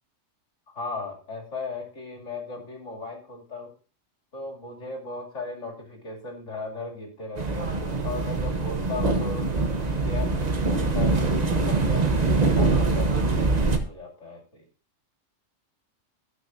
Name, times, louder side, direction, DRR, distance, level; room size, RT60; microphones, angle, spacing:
voice 1, 0.7-3.7 4.3-7.7 8.0-9.4 9.9-11.2 11.5-14.6, left 3 dB, 70° left, 0 dB, 2.9 m, -37 dB
sound 1, 7.4-13.8, right 3 dB, 35° right, 1.0 m, -23 dB
18.5 x 6.2 x 2.6 m, 0.37 s
omnidirectional pair, 1.3 m